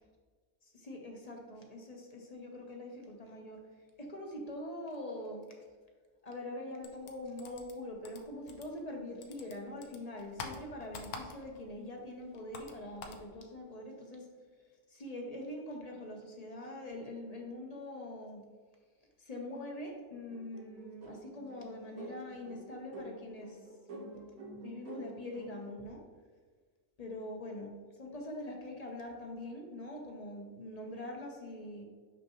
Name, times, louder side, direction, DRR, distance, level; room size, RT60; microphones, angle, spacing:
voice 1, 0.8-3.6 4.0-5.4 6.2-14.2 14.9-18.4 19.2-23.6 24.1-24.2 24.4-26.0 27.0-27.7 28.0-31.8, left 1 dB, 35° left, 1 dB, 0.7 m, -43 dB
sound 1, 6.8-9.0 9.2-11.7 12.0-13.3, left 4 dB, 90° left, 1.2 m, -46 dB
sound 2, 20.3-25.8, right 2 dB, 75° right, 1.6 m, -49 dB
6.2 x 5.8 x 2.9 m, 1.5 s
omnidirectional pair, 1.5 m